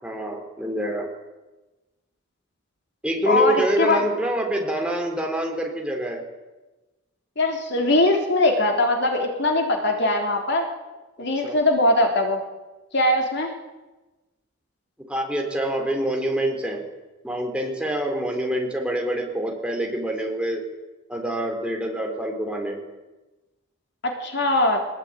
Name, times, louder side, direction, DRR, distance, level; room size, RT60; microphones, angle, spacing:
voice 1, 0.0-1.1 3.0-6.2 11.4-11.6 15.1-16.8 17.2-20.6 21.1-22.8, right 1 dB, 5° right, 1 dB, 4.4 m, -26 dB
voice 2, 3.3-4.0 7.4-10.7 11.2-12.4 12.9-13.5 24.0-24.8, left 2 dB, 55° left, 3 dB, 3.6 m, -21 dB
23.0 x 21.0 x 9.2 m, 1.1 s
head